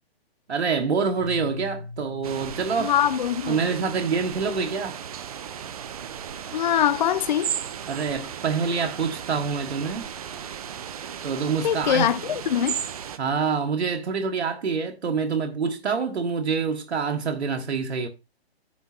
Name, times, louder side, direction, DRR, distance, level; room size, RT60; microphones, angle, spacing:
voice 1, 0.5-2.9 3.5-5.0 7.9-10.1 11.2-12.1 13.2-18.1, right 5 dB, 90° right, 1.5 m, -26 dB
Keyboard (musical), 1.1-4.3, left 3 dB, 55° right, 2.2 m, -41 dB
sound 1, 2.2-13.2, right 8 dB, 35° right, 0.7 m, -35 dB
voice 2, 2.8-3.6 6.5-7.5 11.6-12.8, left 10 dB, 45° left, 0.6 m, -23 dB
9.4 x 5.9 x 4.3 m
hypercardioid pair, 165°, 32 cm